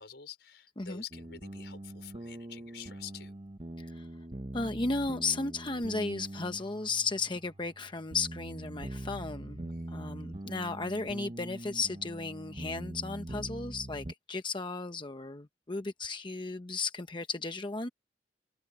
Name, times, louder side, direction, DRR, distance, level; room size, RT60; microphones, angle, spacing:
voice 1, 0.0-3.3 9.7-10.0, left 8 dB, 75° left, 4.9 m, -48 dB
sound 1, 1.1-14.1, right 1 dB, 35° right, 0.9 m, -43 dB
voice 2, 4.5-17.9, left 3 dB, 25° left, 0.8 m, -35 dB
head